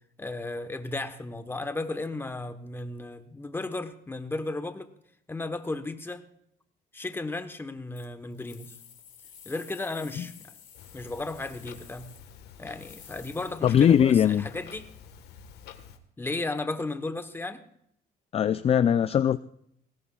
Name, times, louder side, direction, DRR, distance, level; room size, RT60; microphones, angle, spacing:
voice 1, 0.2-4.9 5.3-6.2 6.9-8.7 9.4-10.5 10.9-12.1 12.6-14.9 16.2-17.6, left 2 dB, 15° left, 8 dB, 1.1 m, -34 dB
sound 1, 8.0-13.5, left 8 dB, 50° left, 2.6 m, -51 dB
Clock, 10.7-16.0, left 7 dB, 75° left, 1.5 m, -49 dB
voice 2, 13.6-14.5 18.3-19.4, left 9 dB, 35° left, 13 dB, 0.4 m, -21 dB
20.0 x 16.5 x 2.4 m, 0.71 s
cardioid pair, 110°, 17 cm